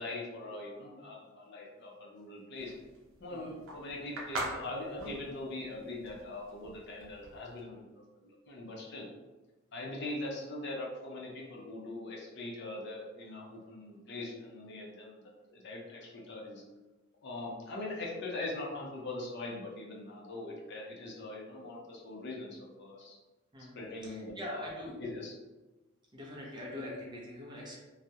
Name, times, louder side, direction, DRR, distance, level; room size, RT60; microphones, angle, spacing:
voice 1, 0.0-2.7 3.2-9.1 9.7-16.6 17.2-23.2 23.7-24.7 25.0-25.3, left 2 dB, 60° left, -2 dB, 0.5 m, -42 dB
sound 1, 2.6-7.6, right 2 dB, 80° right, 0.5 m, -41 dB
voice 2, 3.3-3.6 23.5-25.0 26.1-27.8, left 1 dB, 20° right, -4 dB, 0.5 m, -43 dB
2.3 x 2.0 x 2.7 m, 1.1 s
head